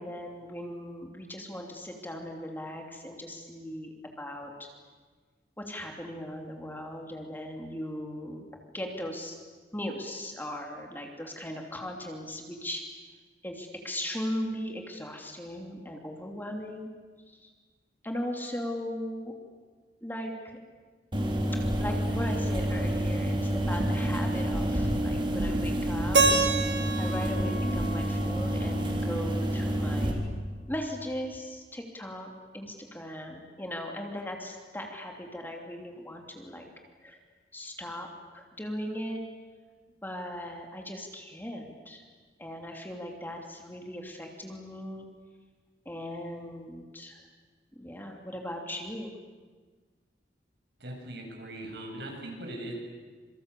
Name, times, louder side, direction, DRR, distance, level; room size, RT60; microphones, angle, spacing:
voice 1, 0.0-4.7 5.6-8.5 8.7-9.4 9.7-12.8 13.4-16.9 17.4-17.5 18.0-19.3 20.0-20.6 21.8-26.2 27.0-30.3 30.7-36.7 37.0-37.2 37.5-38.1 38.3-39.2 40.0-42.0 42.4-45.1 45.8-47.2 47.7-49.1, left 1 dB, 10° left, 2 dB, 3.0 m, -38 dB
sound 1, 21.1-30.1, right 1 dB, 30° right, 3.7 m, -28 dB
Keyboard (musical), 26.1-29.1, right 3 dB, 85° right, 3.1 m, -28 dB
voice 2, 50.8-52.7, right 1 dB, 65° right, 1 dB, 7.6 m, -40 dB
27.0 x 25.0 x 8.4 m, 1.5 s
head